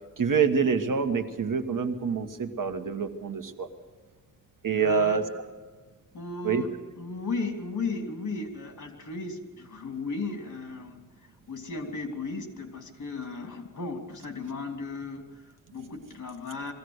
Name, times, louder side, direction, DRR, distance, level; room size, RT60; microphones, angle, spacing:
voice 1, 0.2-3.7 4.6-5.2 6.4-6.6, right 6 dB, 70° right, 6 dB, 1.5 m, -26 dB
voice 2, 4.8-5.5 6.1-6.7 6.9-11.0 11.5-16.7, left 3 dB, 60° left, 3 dB, 3.0 m, -35 dB
22.0 x 16.0 x 8.1 m, 1.4 s
wide cardioid pair, 130°, 33 cm